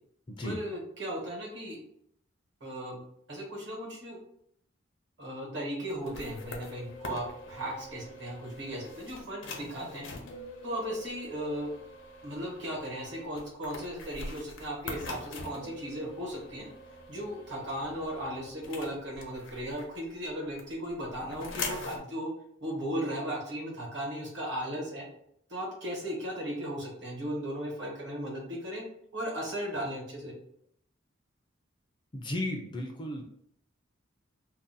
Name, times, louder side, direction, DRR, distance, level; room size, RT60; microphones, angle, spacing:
voice 1, 0.4-1.8 2.6-3.0 3.3-4.2 5.2-10.1 10.6-11.7 12.2-16.7 17.1-22.3 22.6-25.0 25.5-28.8 29.1-30.3, equal, 60° right, -2 dB, 1.1 m, -36 dB
sound 1, 5.9-20.2 20.6-22.0, left 3 dB, 70° left, 0.6 m, -43 dB
voice 2, 32.1-33.2, left 1 dB, 25° left, 1 dB, 0.3 m, -34 dB
2.5 x 2.1 x 3.9 m, 0.70 s
head